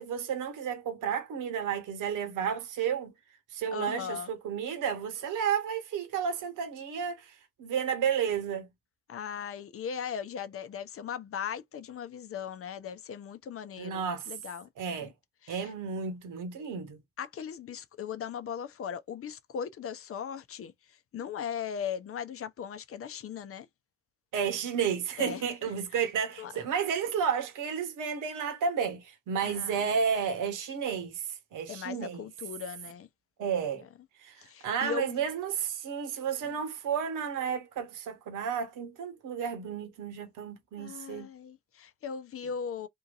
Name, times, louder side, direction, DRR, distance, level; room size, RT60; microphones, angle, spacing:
voice 1, 0.0-3.1 3.5-7.3 7.6-8.7 13.8-14.2 14.8-15.1 15.5-17.0 24.3-31.2 31.5-32.2 33.4-33.8 34.2-34.3 34.6-41.3, right 7 dB, 55° right, 1.3 m, -32 dB
voice 2, 3.7-4.3 9.1-14.7 15.0-15.1 15.4-15.7 17.2-23.7 25.2-25.5 26.4-26.5 29.4-30.0 31.7-33.1 33.7-33.9 34.4-35.2 36.4-36.5 40.8-42.9, left 7 dB, 40° left, 0.7 m, -38 dB
3.7 x 2.6 x 2.5 m
hypercardioid pair, 45°, 36 cm